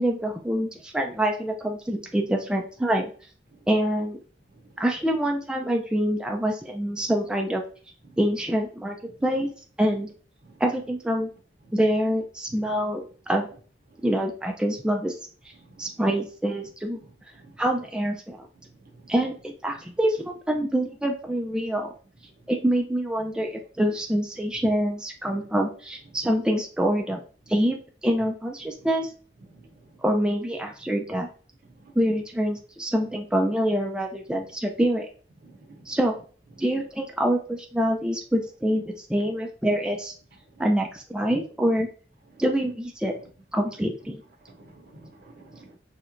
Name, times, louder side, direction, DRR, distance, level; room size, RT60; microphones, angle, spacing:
voice 1, 0.0-3.1 3.7-4.2 4.8-7.6 8.2-9.0 9.2-9.5 9.8-10.1 10.6-11.3 11.7-13.5 14.0-15.1 15.8-17.0 17.6-18.5 19.1-21.9 22.5-27.2 27.5-29.1 30.0-31.3 32.0-35.1 35.9-36.1 36.6-40.1 40.6-41.9 42.4-43.1 43.5-44.2, equal, 5° right, 0.3 m, -25 dB
voice 2, 15.6-15.9 17.0-17.1 17.4-17.5 18.9-19.1 19.7-19.8 25.4-25.5 28.8-28.9 29.5-29.7 31.9-32.0 35.4-36.0 44.5-45.8, right 2 dB, 60° right, 0.7 m, -51 dB
3.2 x 2.9 x 2.5 m
head